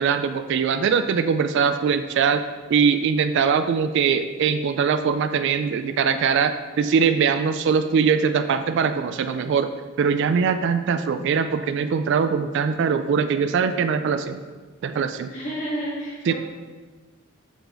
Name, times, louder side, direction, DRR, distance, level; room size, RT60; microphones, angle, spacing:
voice 1, 0.0-2.4 2.7-9.7 10.0-14.4 14.8-15.3 16.3-16.4, right 6 dB, 60° right, 10 dB, 0.3 m, -22 dB
voice 2, 15.3-16.3, right 1 dB, 35° left, -7 dB, 2.0 m, -30 dB
6.9 x 4.0 x 3.8 m, 1.4 s
head